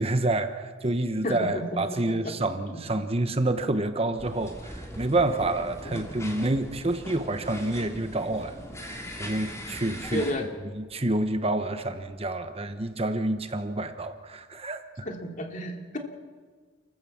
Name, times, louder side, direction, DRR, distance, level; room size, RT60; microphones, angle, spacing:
voice 1, 0.0-10.2 10.6-15.1, right 2 dB, 35° right, 9 dB, 1.1 m, -28 dB
voice 2, 1.2-1.8 2.2-2.3 2.7-2.8 5.8-6.0 10.1-10.4 15.0-16.0, equal, 45° left, 2 dB, 2.9 m, -31 dB
sound 1, 4.2-10.3, equal, 15° left, 3.0 m, -40 dB
29.0 x 14.5 x 7.5 m, 1.5 s
head